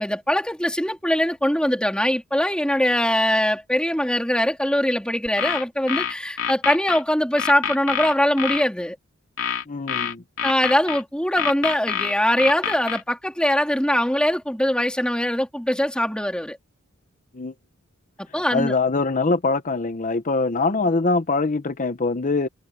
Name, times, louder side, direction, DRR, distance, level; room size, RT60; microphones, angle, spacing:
voice 1, 0.0-9.0 10.4-16.6 18.2-18.8, equal, 5° left, 3.1 m, -22 dB
sound 1, 5.3-7.0 7.4-8.6 9.4-11.0 11.4-13.0, left 8 dB, 75° left, 2.8 m, -26 dB
voice 2, 9.7-10.2 17.3-17.5 18.5-22.5, left 3 dB, 40° left, 0.8 m, -23 dB
head